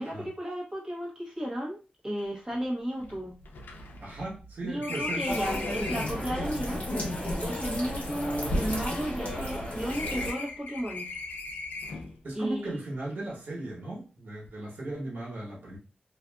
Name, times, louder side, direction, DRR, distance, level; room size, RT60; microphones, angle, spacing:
voice 1, 0.0-1.8 2.0-3.3 4.6-6.8 7.2-11.1 12.3-12.7, equal, 20° right, 1.2 m, -34 dB
sound 1, 2.2-2.3 2.5-2.6 3.0-6.3 7.1-9.6 9.9-12.2, left 3 dB, 85° left, 0.5 m, -39 dB
voice 2, 4.0-5.3 5.9-6.1 12.2-15.8, right 2 dB, 85° right, 1.0 m, -37 dB
sound 2, 5.3-10.3, left 1 dB, 45° left, 1.0 m, -32 dB
2.6 x 2.5 x 2.3 m
wide cardioid pair, 100°, 3 cm